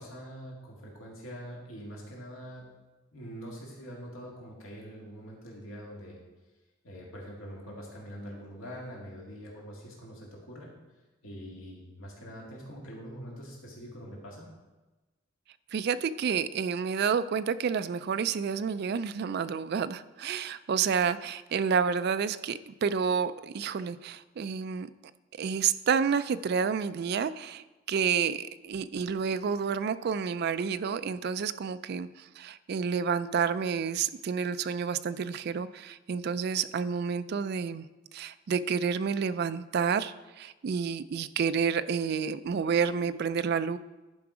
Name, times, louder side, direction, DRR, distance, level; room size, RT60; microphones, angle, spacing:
voice 1, 0.0-2.7 3.1-6.2 6.8-10.8 11.2-14.5, equal, 90° left, -2 dB, 1.9 m, -44 dB
voice 2, 15.7-24.9 25.4-32.1 32.4-37.9 38.1-43.8, right 6 dB, 55° right, 13 dB, 0.3 m, -29 dB
10.5 x 4.8 x 4.9 m, 1.1 s
head